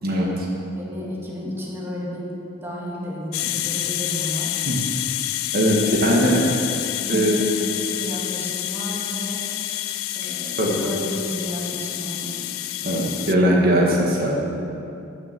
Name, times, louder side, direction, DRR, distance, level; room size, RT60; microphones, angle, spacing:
voice 1, 0.0-0.5 4.7-4.8 5.5-6.4 7.1-7.3 10.6-10.8 12.8-14.3, equal, 50° right, -2 dB, 1.8 m, -20 dB
voice 2, 0.8-2.3 2.6-4.6 5.8-6.4 7.0-9.4 10.2-12.5, equal, 10° right, -5 dB, 2.0 m, -32 dB
sound 1, 3.3-13.3, left 14 dB, 85° left, 0.4 m, -28 dB
9.6 x 9.5 x 6.9 m, 2.7 s
head